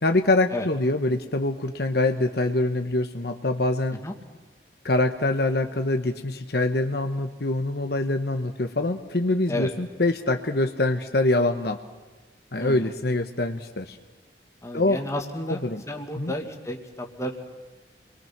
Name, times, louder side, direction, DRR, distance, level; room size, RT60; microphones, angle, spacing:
voice 1, 0.0-4.0 4.8-11.8 12.5-14.0 14.7-15.0 15.5-15.8 16.2-16.3, left 2 dB, 60° left, 6 dB, 1.2 m, -24 dB
voice 2, 12.6-12.9 14.6-15.6 15.9-17.5, left 1 dB, 15° left, 3 dB, 2.3 m, -32 dB
30.0 x 23.0 x 6.1 m, 1.3 s
head